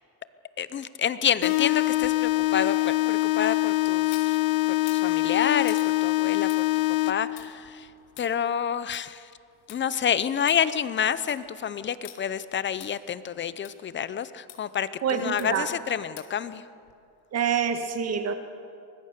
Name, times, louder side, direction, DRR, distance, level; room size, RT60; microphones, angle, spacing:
voice 1, 0.6-4.4 4.9-6.5 7.1-7.9 8.2-9.3 9.7-16.6, left 8 dB, 25° left, 15 dB, 0.7 m, -28 dB
sound 1, 1.4-7.4, left 21 dB, 70° left, 1.0 m, -24 dB
sound 2, 1.9-4.3 4.8-9.8 10.2-10.3 10.5-10.6 11.0-11.5 12.0-12.2 12.8-12.9 13.6-13.7 14.5-14.6 15.4-15.7 16.2-16.4 16.9-17.0, left 10 dB, 90° left, 3.2 m, -48 dB
voice 2, 15.0-15.7 17.3-18.3, right 7 dB, 35° right, 7 dB, 1.9 m, -26 dB
24.5 x 20.5 x 6.8 m, 2.5 s
cardioid pair, 140°, 45 cm